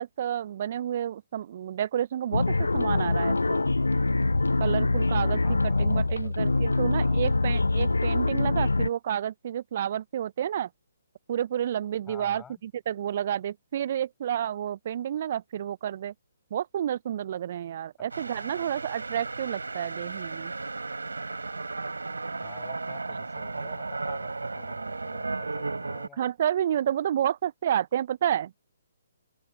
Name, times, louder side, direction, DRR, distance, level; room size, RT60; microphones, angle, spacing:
voice 1, 0.0-3.6 4.6-10.7 11.3-16.1 16.5-20.5 26.2-28.5, right 10 dB, 45° right, 0.3 m, -30 dB
sound 1, 2.3-8.9, left 2 dB, 80° left, 0.3 m, -24 dB
voice 2, 5.2-7.2 12.1-12.6 18.0-18.1 22.4-26.2, left 7 dB, 10° left, 5.3 m, -51 dB
sound 2, 18.1-26.1, right 3 dB, 80° right, 3.3 m, -35 dB
figure-of-eight pair, 135°, 0 cm